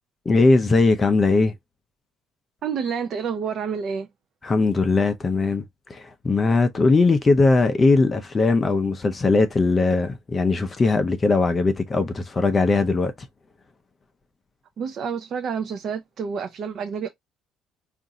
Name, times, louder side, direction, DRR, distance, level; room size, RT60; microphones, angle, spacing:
voice 1, 0.3-1.5 4.4-5.6 5.9-13.1, left 3 dB, 20° left, 0.5 m, -20 dB
voice 2, 2.6-4.1 14.8-17.1, right 6 dB, 40° right, 0.5 m, -29 dB
5.0 x 2.5 x 2.7 m
cardioid pair, 170°, 0 cm